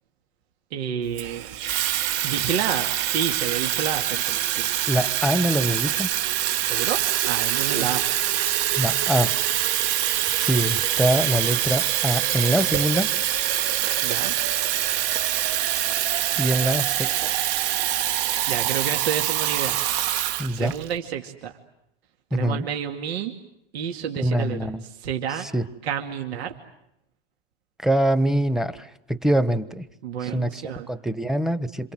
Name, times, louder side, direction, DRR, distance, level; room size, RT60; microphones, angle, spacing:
voice 1, 0.7-1.5 2.2-4.7 6.6-8.0 14.0-14.3 18.5-19.8 20.5-21.5 22.3-23.3 23.7-24.6 25.0-25.5 25.8-26.5 30.0-30.9, right 8 dB, 80° right, 3 dB, 2.5 m, -29 dB
Water tap faucet / Fill (with liquid), 1.2-20.9, right 12 dB, 50° right, 1.6 m, -25 dB
voice 2, 4.9-6.1 7.7-7.9 8.8-9.3 10.3-13.1 16.4-17.1 20.4-20.8 22.3-22.6 24.2-24.8 25.3-25.6 27.8-29.8 30.2-31.9, right 1 dB, ahead, 16 dB, 1.2 m, -24 dB
27.5 x 27.5 x 7.8 m, 0.83 s
hypercardioid pair, 120°, 31 cm